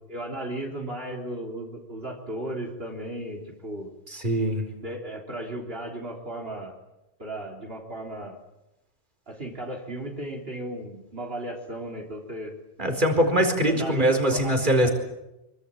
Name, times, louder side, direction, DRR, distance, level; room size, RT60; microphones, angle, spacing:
voice 1, 0.1-3.9 4.8-6.8 7.2-8.4 9.3-12.5 13.6-14.9, right 1 dB, 65° right, 1 dB, 4.0 m, -35 dB
voice 2, 4.1-4.6 12.8-14.9, right 1 dB, 50° right, 5 dB, 4.7 m, -22 dB
26.0 x 24.5 x 8.9 m, 0.95 s
omnidirectional pair, 1.1 m